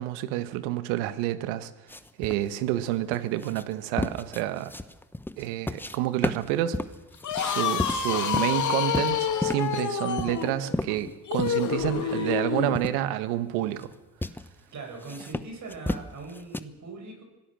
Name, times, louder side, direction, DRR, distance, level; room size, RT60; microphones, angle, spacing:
voice 1, 0.0-1.7 2.2-4.7 5.4-6.8 7.4-13.9, right 13 dB, 75° right, 12 dB, 1.7 m, -29 dB
sound 1, 1.9-6.0 6.2-8.6 8.9-9.8 10.2-11.7 12.0-12.1 12.7-13.0 13.6-13.9 14.2-14.5 15.0-16.6, left 1 dB, 5° left, 0.9 m, -33 dB
sound 2, 7.1-12.8, left 7 dB, 45° left, 2.6 m, -28 dB
voice 2, 12.0-12.5 14.7-17.2, right 3 dB, 40° right, 2 dB, 7.1 m, -40 dB
25.5 x 18.5 x 6.5 m, 1.1 s
supercardioid pair, 85°, 42 cm